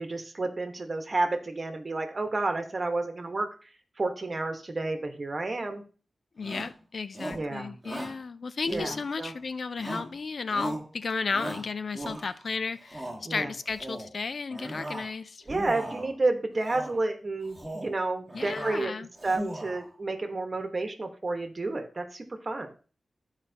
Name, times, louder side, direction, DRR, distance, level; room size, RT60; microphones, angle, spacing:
voice 1, 0.0-3.7 4.0-5.8 7.3-7.8 8.7-9.3 13.2-13.5 15.5-18.9 19.2-22.7, right 2 dB, 35° right, 5 dB, 1.2 m, -30 dB
voice 2, 6.4-15.4 18.3-19.1, left 4 dB, 60° left, 13 dB, 0.4 m, -34 dB
Shout, 6.4-6.8 7.1-7.5 7.8-8.2 8.6-9.3 9.8-10.2 10.5-10.9 11.3-12.4 12.8-13.2 13.7-14.1 14.5-15.1 15.4-16.1 16.6-17.0 17.4-18.0 18.3-18.8 19.2-19.9, right 1 dB, 10° right, 1.5 m, -37 dB
13.5 x 4.8 x 2.8 m, 0.37 s
wide cardioid pair, 115°, 0 cm